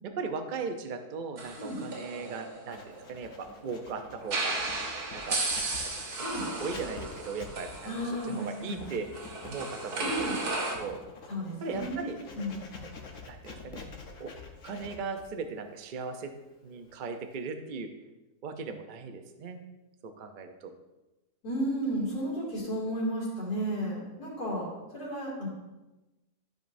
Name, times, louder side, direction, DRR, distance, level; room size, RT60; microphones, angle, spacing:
voice 1, 0.0-4.6 5.1-5.4 5.8-5.9 6.3-8.0 8.3-9.1 9.4-10.4 10.8-11.0 11.6-12.2 13.3-13.8 14.2-14.3 14.6-16.3 16.6-17.9 18.4-19.6 20.0-20.7, right 4 dB, 60° right, 6 dB, 0.5 m, -38 dB
sound 1, 1.4-3.4 4.2-10.8, right 2 dB, 80° right, 1.7 m, -35 dB
Writing, 2.7-17.4, left 4 dB, 60° left, 1.2 m, -47 dB
voice 2, 7.8-8.8 10.0-10.4 11.3-12.6 21.4-24.7 24.9-25.5, equal, 85° left, -5 dB, 3.1 m, -33 dB
12.5 x 5.3 x 2.6 m, 1.1 s
omnidirectional pair, 1.6 m